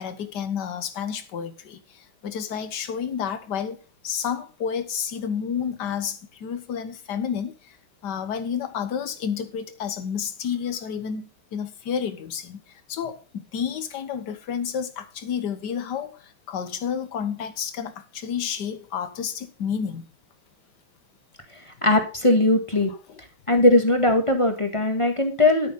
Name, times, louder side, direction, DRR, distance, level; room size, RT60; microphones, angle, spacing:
voice 1, 0.0-7.8 8.0-20.1 23.1-23.2, left 7 dB, 55° left, 1.7 m, -30 dB
voice 2, 21.8-22.9 23.5-25.7, left 2 dB, 15° left, 1.6 m, -19 dB
12.0 x 6.5 x 5.5 m
omnidirectional pair, 2.3 m